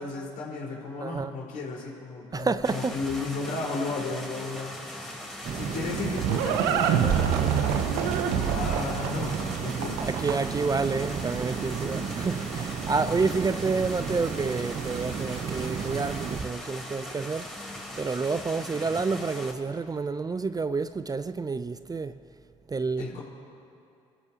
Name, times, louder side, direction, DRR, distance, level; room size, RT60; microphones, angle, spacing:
voice 1, 0.0-5.2 5.5-10.0 11.8-12.0 23.0-23.2, left 3 dB, 65° left, 4.7 m, -34 dB
voice 2, 1.0-1.3 2.3-3.0 10.0-17.5 18.0-22.2 22.7-23.2, right 4 dB, 25° right, 0.6 m, -29 dB
sound 1, 2.6-19.5, left 1 dB, 5° left, 3.9 m, -40 dB
sound 2, 5.4-16.4, right 7 dB, 50° right, 1.1 m, -33 dB
Livestock farm animals working animals, 5.6-10.7, right 8 dB, 75° right, 0.9 m, -26 dB
29.5 x 14.0 x 2.9 m
hypercardioid pair, 50°, 15 cm